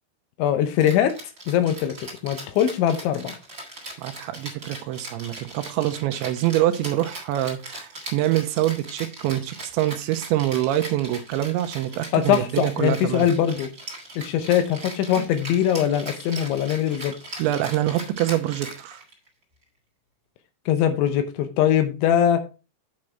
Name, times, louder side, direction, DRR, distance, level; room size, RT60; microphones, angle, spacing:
voice 1, 0.4-1.1 1.5-3.3 12.1-13.7 14.2-17.1 20.7-22.4, left 10 dB, 80° left, 3.1 m, -22 dB
Rattle (instrument), 0.8-19.3, right 1 dB, 25° right, 2.3 m, -39 dB
voice 2, 4.0-13.3 15.2-15.3 17.4-19.0, right 14 dB, 85° right, 2.9 m, -25 dB
8.6 x 6.4 x 4.5 m
omnidirectional pair, 5.6 m